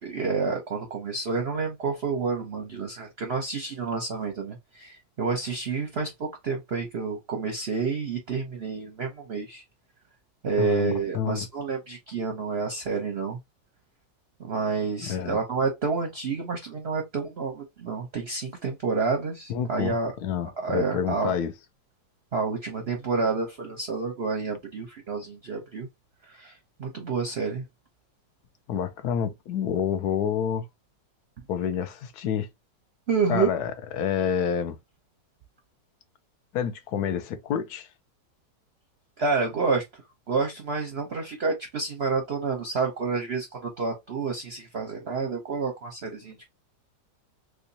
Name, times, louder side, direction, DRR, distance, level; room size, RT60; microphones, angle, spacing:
voice 1, 0.0-9.6 10.4-13.4 14.4-20.1 20.6-21.3 22.3-25.9 26.3-27.6 33.1-33.5 39.2-39.8 40.3-46.5, right 4 dB, 55° right, 0.7 m, -29 dB
voice 2, 10.6-11.5 15.0-15.4 19.5-19.9 20.2-21.5 28.7-30.6 31.5-32.5 33.3-34.8 36.5-37.9, left 8 dB, 70° left, 1.1 m, -28 dB
3.5 x 3.1 x 2.7 m
omnidirectional pair, 2.0 m